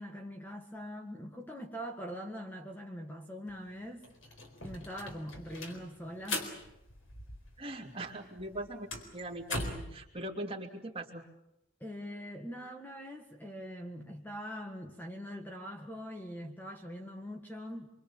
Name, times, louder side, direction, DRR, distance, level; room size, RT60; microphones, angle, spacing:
voice 1, 0.0-4.1 4.6-6.5 11.8-17.9, equal, 10° left, 1.7 m, -43 dB
sound 1, 3.5-3.6 3.8-7.8 8.0-10.0, left 2 dB, 85° left, 4.2 m, -40 dB
voice 2, 7.6-8.9 9.1-11.2, right 1 dB, 30° right, 2.9 m, -40 dB
26.0 x 24.0 x 7.3 m
head